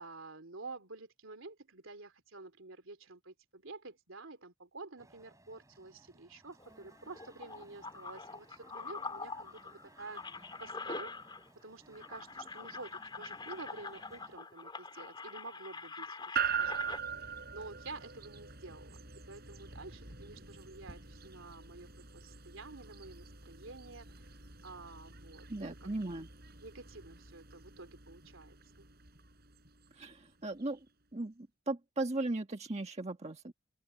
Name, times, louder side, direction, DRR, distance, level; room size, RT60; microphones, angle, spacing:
voice 1, 0.0-11.1 11.5-19.0 19.3-26.3 26.6-28.9, right 3 dB, 70° right, 3.2 m, -50 dB
sound 1, 5.0-14.4, right 1 dB, 15° right, 6.7 m, -61 dB
sound 2, 6.6-11.6 11.9-17.0, left 4 dB, 20° left, 3.1 m, -45 dB
sound 3, 16.4-30.6, right 7 dB, 50° right, 7.7 m, -43 dB
voice 2, 25.5-26.3 29.9-30.8 31.1-33.5, right 2 dB, 30° right, 1.5 m, -37 dB
open air
head